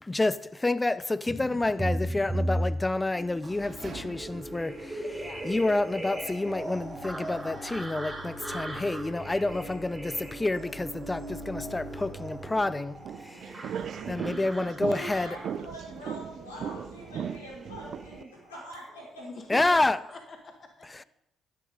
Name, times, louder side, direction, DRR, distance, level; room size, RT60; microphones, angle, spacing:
voice 1, 0.0-13.0 13.2-15.4 19.5-20.0 20.9-21.0, left 2 dB, 20° left, 0.6 m, -29 dB
sound 1, 1.3-19.0 19.3-20.2, right 1 dB, 15° right, 5.1 m, -38 dB
sound 2, 3.1-13.4, right 1 dB, 40° right, 3.2 m, -44 dB
sound 3, 13.0-18.2, right 8 dB, 60° right, 0.6 m, -38 dB
voice 2, 13.2-13.8 19.2-21.0, left 3 dB, 45° left, 1.6 m, -45 dB
voice 3, 14.9-19.6, equal, 90° left, 5.0 m, -44 dB
11.5 x 10.5 x 5.1 m
hypercardioid pair, 45°, 0 cm